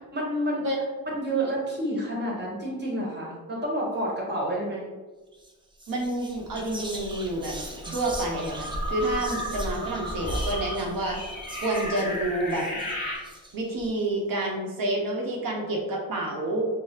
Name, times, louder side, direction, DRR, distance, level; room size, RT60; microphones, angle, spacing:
voice 1, 0.1-0.7 1.1-4.8, right 1 dB, 30° right, -3 dB, 1.1 m, -29 dB
Whispering, 5.3-5.5 5.8-13.9, equal, 15° right, 0.4 m, -38 dB
voice 2, 5.9-7.5 7.9-11.2 11.6-12.7 13.5-16.7, right 1 dB, 70° right, -1 dB, 0.8 m, -28 dB
sound 1, 7.8-13.2, left 1 dB, 25° left, 1.1 m, -35 dB
4.7 x 2.0 x 2.8 m, 1.2 s
wide cardioid pair, 130°, 35 cm